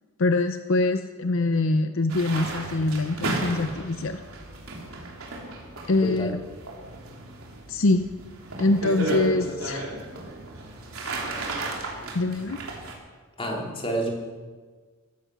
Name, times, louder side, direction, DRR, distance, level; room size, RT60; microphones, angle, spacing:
voice 1, 0.2-4.2 5.9-6.4 7.7-8.0 8.6-9.9 12.1-12.6, left 2 dB, 65° left, 8 dB, 0.6 m, -24 dB
sound 1, 2.1-12.9, right 2 dB, 85° right, 3.4 m, -34 dB
voice 2, 6.0-6.3 9.1-9.2 13.4-14.1, right 1 dB, 25° left, 0 dB, 2.7 m, -29 dB
16.0 x 13.5 x 6.1 m, 1.5 s
head